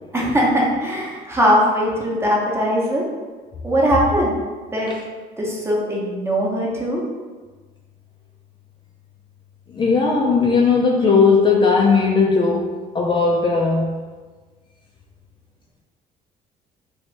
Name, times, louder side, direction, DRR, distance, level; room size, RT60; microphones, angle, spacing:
voice 1, 0.1-3.0 3.6-4.4 4.7-4.9 5.4-7.0, equal, 15° right, -4 dB, 0.8 m, -20 dB
voice 2, 9.7-13.9, left 4 dB, 30° left, -2 dB, 0.4 m, -17 dB
2.9 x 2.6 x 3.2 m, 1.3 s
cardioid pair, 110°, 17 cm